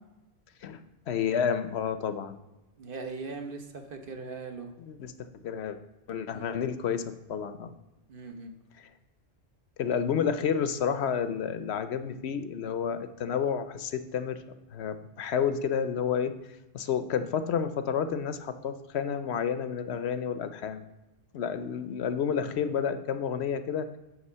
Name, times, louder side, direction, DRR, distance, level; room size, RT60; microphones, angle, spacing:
voice 1, 1.1-2.3 4.8-5.1 5.4-5.8 6.1-7.7 8.8-8.9 9.8-14.4 14.7-16.3 16.7-20.8 21.3-23.9, left 7 dB, 75° left, 10 dB, 0.9 m, -30 dB
voice 2, 2.8-4.7 6.3-6.5 8.1-8.5, right 4 dB, 55° right, 5 dB, 1.1 m, -40 dB
9.1 x 3.5 x 6.7 m, 1.0 s
omnidirectional pair, 1.1 m